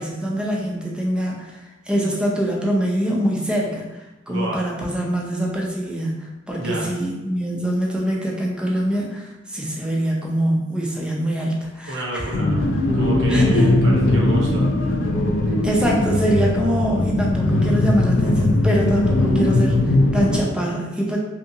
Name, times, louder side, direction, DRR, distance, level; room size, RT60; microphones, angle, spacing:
voice 1, 0.0-12.3 13.3-13.7 15.6-21.2, right 1 dB, 5° right, -2 dB, 0.4 m, -24 dB
voice 2, 4.3-4.7 6.6-6.9 11.9-12.6 12.9-14.7, right 1 dB, 80° right, -4 dB, 0.8 m, -29 dB
sound 1, 12.3-20.4, left 1 dB, 70° left, 0.4 m, -19 dB
2.7 x 2.7 x 2.6 m, 1.1 s
head